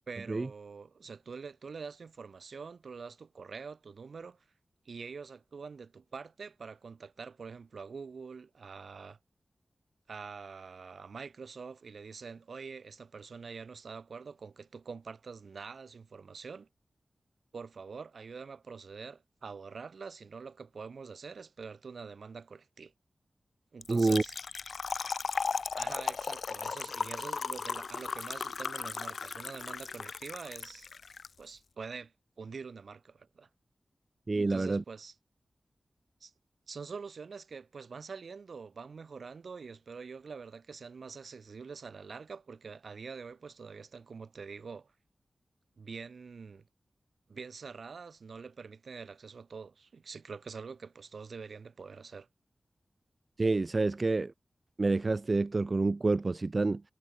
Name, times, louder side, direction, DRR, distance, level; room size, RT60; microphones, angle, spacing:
voice 1, 0.1-4.4 4.8-9.2 10.1-16.7 17.5-22.9 23.7-24.3 25.8-30.9 31.4-33.5 34.3-35.1 36.2-36.3 36.7-44.9 45.8-46.6 47.3-52.3, right 5 dB, 75° right, 7.5 m, -45 dB
Trickle dribble / Fill (with liquid), 23.8-31.3, left 5 dB, 75° left, 2.8 m, -36 dB
voice 2, 23.9-24.2 34.3-34.8 53.4-54.3 54.8-56.8, right 3 dB, 40° right, 0.8 m, -28 dB
wide cardioid pair, 115°, 0 cm